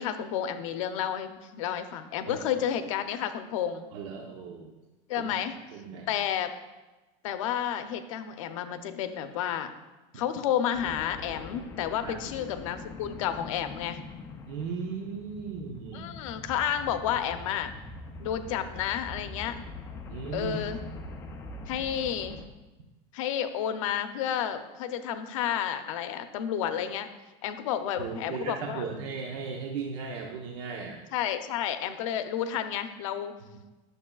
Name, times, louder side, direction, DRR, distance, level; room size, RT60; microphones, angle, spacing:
voice 1, 0.0-3.9 5.1-5.6 6.1-6.5 7.2-9.7 10.1-14.0 15.9-17.7 18.2-19.6 20.3-20.8 21.7-22.4 23.1-27.1 27.4-28.8 31.1-33.3, left 9 dB, 85° left, 9 dB, 0.6 m, -31 dB
voice 2, 3.9-4.8 5.2-5.3 5.7-6.1 12.0-12.2 14.5-16.2 20.1-20.9 28.0-31.0, right 5 dB, 65° right, 1 dB, 0.8 m, -37 dB
sound 1, 10.7-22.4, left 3 dB, 15° left, 0.4 m, -43 dB
9.9 x 6.7 x 2.3 m, 1.1 s
supercardioid pair, 175°, 16 cm